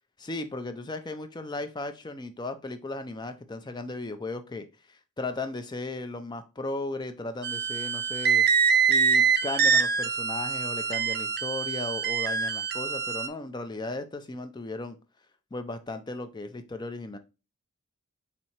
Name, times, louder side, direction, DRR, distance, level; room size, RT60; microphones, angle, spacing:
voice 1, 0.2-8.4 8.9-15.0 15.5-17.2, left 2 dB, 20° left, 0.4 m, -36 dB
sound 1, 7.4-13.3, right 6 dB, 45° right, 0.5 m, -25 dB
4.2 x 2.8 x 4.3 m
head